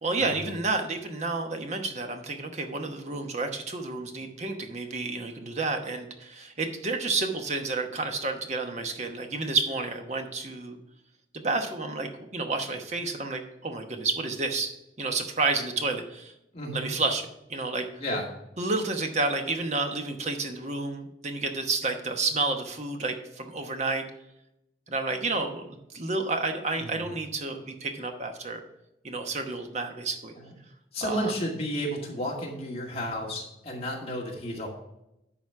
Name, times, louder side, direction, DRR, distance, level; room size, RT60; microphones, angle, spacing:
voice 1, 0.0-10.8 11.3-14.7 15.0-16.3 16.7-17.8 18.6-24.0 24.9-28.6 29.0-30.3 31.0-31.3, right 3 dB, 40° right, 5 dB, 1.0 m, -30 dB
voice 2, 16.5-16.8 18.0-18.2 26.8-26.9 30.4-30.5 30.9-34.7, equal, 35° left, -2 dB, 2.0 m, -32 dB
11.0 x 4.1 x 5.8 m, 0.86 s
head